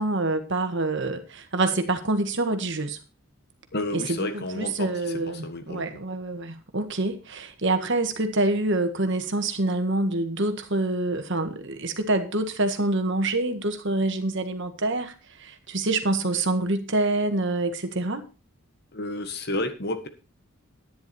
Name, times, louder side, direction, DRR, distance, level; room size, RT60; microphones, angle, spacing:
voice 1, 0.0-3.0 3.9-18.2, right 2 dB, 55° right, 7 dB, 1.7 m, -26 dB
voice 2, 3.7-5.9 18.9-20.1, left 2 dB, 50° left, 8 dB, 1.6 m, -31 dB
10.5 x 10.5 x 4.4 m, 0.33 s
head